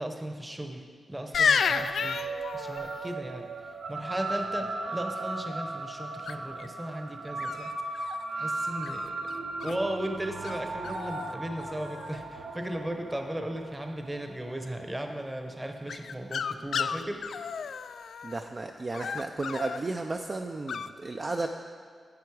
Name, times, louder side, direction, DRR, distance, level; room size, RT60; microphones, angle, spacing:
voice 1, 0.0-2.2 2.5-3.4 3.9-9.1 9.6-17.2, right 1 dB, 10° right, 5 dB, 0.8 m, -36 dB
sound 1, 1.3-3.1 6.3-6.7 7.4-8.2 8.8-9.8 10.4-10.6 10.8-11.3 11.6-12.2 15.9-18.4 18.9-19.8 20.7-20.9, left 6 dB, 75° left, 0.3 m, -31 dB
sound 2, 1.4-16.2, right 3 dB, 70° right, 0.8 m, -37 dB
voice 2, 18.2-21.5, right 2 dB, 30° right, 3 dB, 0.4 m, -33 dB
10.5 x 7.9 x 4.7 m, 2.1 s
wide cardioid pair, 165°, 0 cm